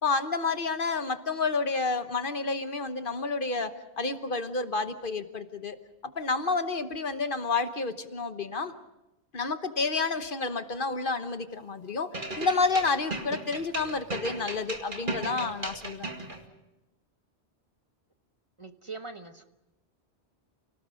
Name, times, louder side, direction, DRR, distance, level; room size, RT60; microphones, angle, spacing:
voice 1, 0.0-3.7 4.0-5.8 6.2-8.7 9.3-16.1, left 4 dB, 55° left, 9 dB, 1.3 m, -30 dB
sound 1, 12.1-16.4, right 2 dB, 50° right, 2.4 m, -36 dB
voice 2, 18.6-19.4, right 4 dB, 30° right, 7 dB, 1.2 m, -41 dB
29.5 x 18.5 x 6.3 m, 0.96 s
omnidirectional pair, 1.1 m